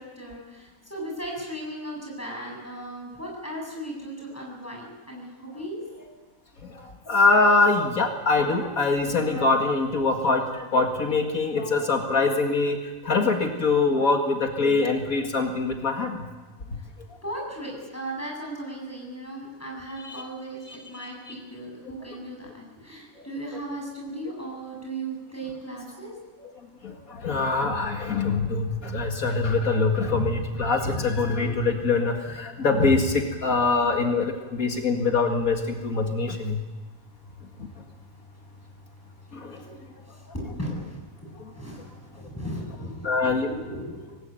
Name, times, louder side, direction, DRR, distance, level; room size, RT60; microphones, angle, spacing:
voice 1, 0.0-5.8 16.8-16.9 17.2-26.1 38.1-38.7 39.0-44.2, right 1 dB, 10° left, -1 dB, 7.8 m, -37 dB
voice 2, 6.6-16.2 20.0-20.2 21.0-21.4 26.4-26.5 26.8-36.6 39.3-39.6 43.0-43.5, left 3 dB, 80° left, 3 dB, 2.5 m, -24 dB
26.0 x 19.0 x 9.2 m, 1.3 s
omnidirectional pair, 1.5 m